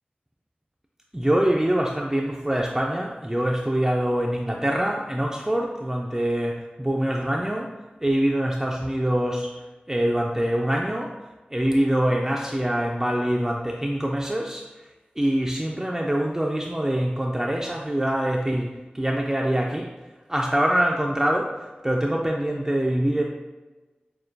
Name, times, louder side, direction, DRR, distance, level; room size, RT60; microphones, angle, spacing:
voice 1, 1.1-7.7 8.0-9.6 9.9-11.2 11.5-14.7 15.2-19.9 20.3-23.2, right 1 dB, 10° right, -1 dB, 0.3 m, -24 dB
6.4 x 2.2 x 2.6 m, 1.2 s
wide cardioid pair, 65°, 3 cm